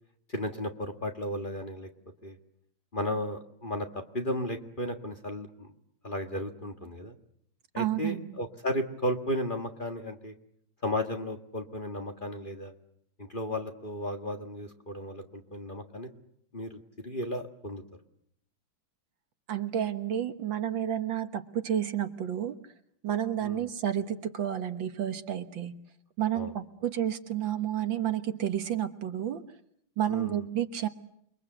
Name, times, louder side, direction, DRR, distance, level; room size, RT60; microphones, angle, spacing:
voice 1, 0.3-1.9 2.2-2.3 2.9-5.7 6.0-7.1 7.7-10.3 10.8-12.7 13.2-16.1 16.5-17.8 23.4-23.6 26.3-26.5 30.1-30.4, left 1 dB, 25° left, 4 dB, 1.7 m, -34 dB
voice 2, 7.8-8.4 19.5-22.6 23.0-25.7 26.2-29.4 30.0-30.9, right 10 dB, 65° right, 9 dB, 1.9 m, -30 dB
29.0 x 22.5 x 8.0 m, 0.73 s
omnidirectional pair, 2.3 m